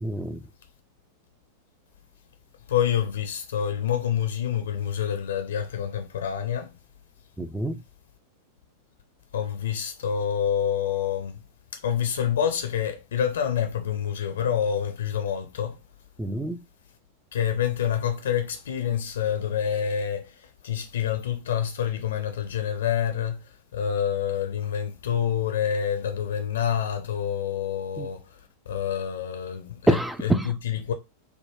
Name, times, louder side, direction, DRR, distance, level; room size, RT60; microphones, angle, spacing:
voice 1, 0.0-0.4 7.4-7.8 16.2-16.6 28.0-28.1 29.9-30.5, right 1 dB, 5° right, 0.3 m, -26 dB
voice 2, 2.7-6.8 9.3-11.4 11.7-15.8 17.3-28.4 28.7-30.9, left 9 dB, 65° left, 0.5 m, -27 dB
3.5 x 2.1 x 2.9 m
figure-of-eight pair, 90°, 0 cm